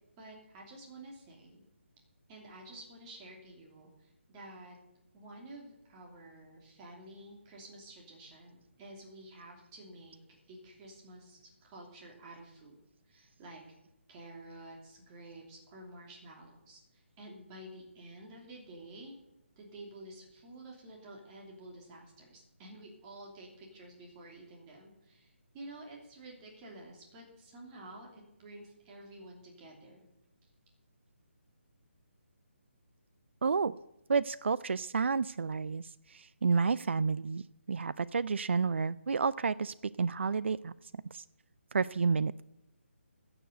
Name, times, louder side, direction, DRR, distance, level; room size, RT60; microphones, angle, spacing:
voice 1, 0.2-1.6 2.3-4.7 5.1-10.2 10.5-12.8 13.0-13.6 14.1-19.1 19.6-30.1, right 1 dB, 20° right, -1 dB, 2.9 m, -50 dB
voice 2, 33.4-33.8 34.1-37.4 37.7-40.7 41.1-41.2 41.7-42.4, right 5 dB, 65° right, 18 dB, 0.4 m, -30 dB
16.0 x 6.9 x 7.9 m, 0.90 s
figure-of-eight pair, 150°, 7 cm